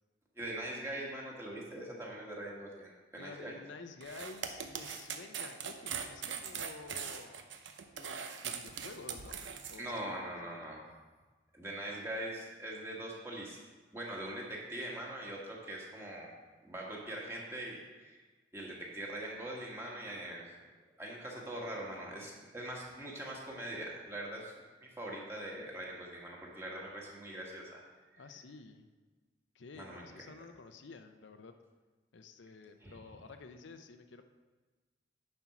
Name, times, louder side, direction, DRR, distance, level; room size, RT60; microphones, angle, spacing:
voice 1, 0.4-3.6 9.8-10.8 11.5-13.6 13.9-16.3 16.6-18.2 18.5-20.5 21.0-24.5 24.8-27.8 28.1-28.2 29.7-30.1 32.8-33.0, right 1 dB, 15° right, -3 dB, 1.6 m, -42 dB
voice 2, 3.2-7.4 7.9-9.4 9.7-10.1 10.4-10.7 28.2-28.9 29.5-31.5 32.1-34.2, left 4 dB, 80° left, 7 dB, 0.6 m, -51 dB
sound 1, 4.0-9.8, right 7 dB, 75° right, 0.7 m, -41 dB
9.5 x 4.5 x 6.0 m, 1.3 s
head